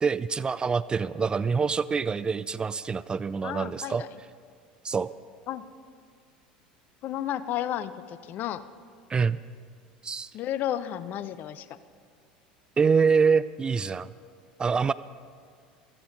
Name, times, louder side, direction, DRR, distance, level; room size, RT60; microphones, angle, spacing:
voice 1, 0.0-4.0 4.8-5.1 9.1-9.4 10.0-10.3 12.8-14.1 14.6-14.9, right 5 dB, 20° right, 16 dB, 0.3 m, -25 dB
voice 2, 3.4-4.1 5.5-5.6 7.0-8.6 10.3-11.7, left 11 dB, 45° left, 15 dB, 0.6 m, -32 dB
15.0 x 14.0 x 5.2 m, 2.1 s
figure-of-eight pair, 70°, 4 cm